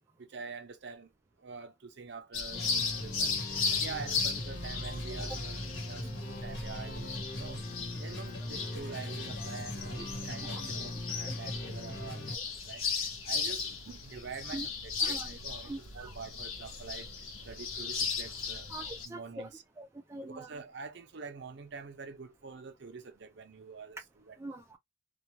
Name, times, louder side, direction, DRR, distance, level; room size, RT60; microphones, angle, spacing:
voice 1, 0.2-1.1 1.4-2.6 2.9-3.3 3.7-7.6 8.0-17.1 17.4-18.7 19.0-19.6 20.2-24.4, right 5 dB, 55° right, 0.6 m, -46 dB
sound 1, 2.3-19.1, left 5 dB, 90° left, 1.0 m, -36 dB
sound 2, 2.5-12.4, left 1 dB, 60° left, 1.0 m, -40 dB
voice 2, 15.7-16.1 18.7-19.5 19.8-20.5 24.4-24.8, right 2 dB, 15° right, 0.3 m, -43 dB
2.3 x 2.3 x 2.8 m
head